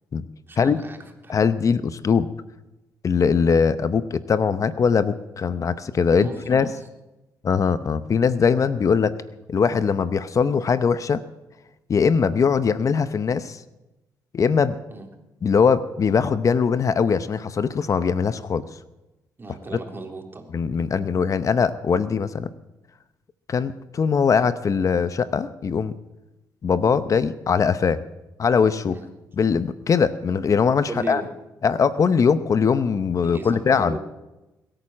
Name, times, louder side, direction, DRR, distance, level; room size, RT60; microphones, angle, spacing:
voice 1, 0.5-1.4 6.1-6.7 14.9-15.1 19.4-20.5 28.9-29.1 30.9-31.3 33.2-34.0, right 2 dB, 30° right, 3 dB, 3.5 m, -36 dB
voice 2, 1.3-2.3 3.0-6.7 7.4-9.2 9.5-11.2 11.9-13.6 14.3-14.8 15.4-18.7 20.5-22.5 23.5-25.9 26.6-28.0 28.4-29.0 29.4-31.2 31.6-34.0, left 6 dB, 50° left, 13 dB, 0.8 m, -21 dB
21.5 x 9.0 x 7.4 m, 1.0 s
cardioid pair, 70°, 7 cm